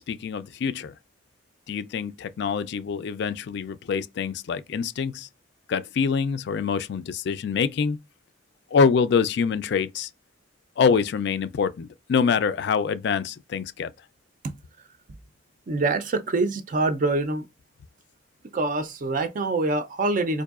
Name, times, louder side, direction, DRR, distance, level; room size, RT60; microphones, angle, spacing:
voice 1, 0.1-0.9 1.7-5.3 5.7-8.0 8.7-10.1 10.8-13.9, left 6 dB, 60° left, 0.3 m, -25 dB
voice 2, 15.7-17.4 18.5-20.4, right 3 dB, 45° right, 0.4 m, -25 dB
4.6 x 2.6 x 2.4 m
head